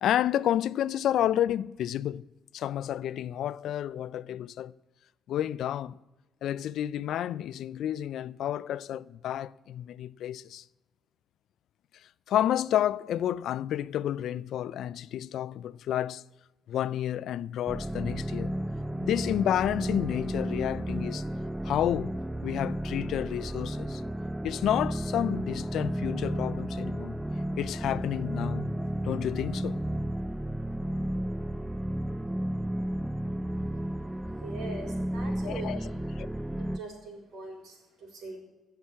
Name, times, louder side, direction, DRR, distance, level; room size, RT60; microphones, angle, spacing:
voice 1, 0.0-2.2 2.5-4.7 5.3-6.0 6.4-10.6 12.3-16.2 16.7-18.6 19.0-21.2 21.6-22.2 22.4-24.0 24.4-27.2 27.6-28.7 29.0-29.8 35.5-35.8 36.2-36.3, left 11 dB, 75° left, 0.4 m, -30 dB
sound 1, 17.7-36.8, right 1 dB, 5° right, 0.4 m, -33 dB
voice 2, 34.3-35.9 36.6-38.4, right 2 dB, 75° right, 4.1 m, -42 dB
16.5 x 5.8 x 8.5 m
cardioid pair, 90°, 0 cm